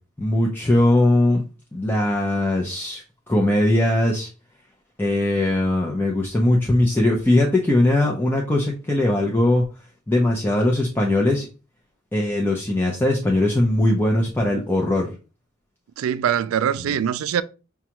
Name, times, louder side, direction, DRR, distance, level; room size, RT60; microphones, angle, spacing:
voice 1, 0.2-1.4 1.7-4.3 5.0-9.6 10.1-11.5 12.1-15.1 16.9-17.0, left 1 dB, 10° left, 0.5 m, -20 dB
voice 2, 16.0-17.4, right 9 dB, 90° right, 0.3 m, -23 dB
6.0 x 2.3 x 2.9 m
head